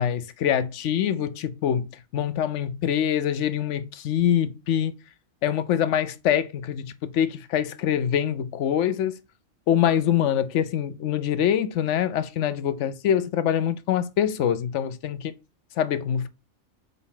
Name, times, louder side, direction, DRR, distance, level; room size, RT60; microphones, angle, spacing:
voice 1, 0.0-4.9 5.4-9.2 9.7-15.3 15.8-16.3, left 9 dB, 70° left, 0.9 m, -24 dB
4.3 x 4.1 x 5.6 m
omnidirectional pair, 1.3 m